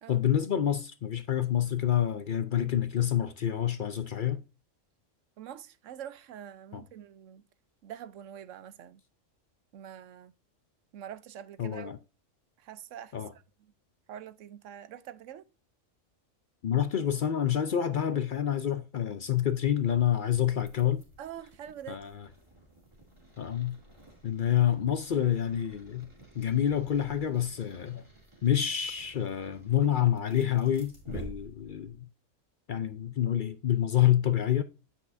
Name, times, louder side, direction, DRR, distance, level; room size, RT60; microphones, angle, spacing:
voice 1, 0.1-4.4 6.7-6.8 11.6-12.0 13.1-13.3 16.6-21.0 21.9-22.3 23.4-23.8 24.2-26.1 26.3-28.0 28.4-32.1 32.7-34.6, left 10 dB, 55° left, 0.6 m, -27 dB
voice 2, 5.4-7.4 7.8-9.0 9.7-10.3 10.9-11.9 12.6-13.2 14.1-15.5 21.2-22.1, right 10 dB, 75° right, 1.0 m, -45 dB
sound 1, 20.4-32.0, right 1 dB, 20° right, 2.3 m, -51 dB
8.5 x 5.6 x 2.6 m
omnidirectional pair, 1.3 m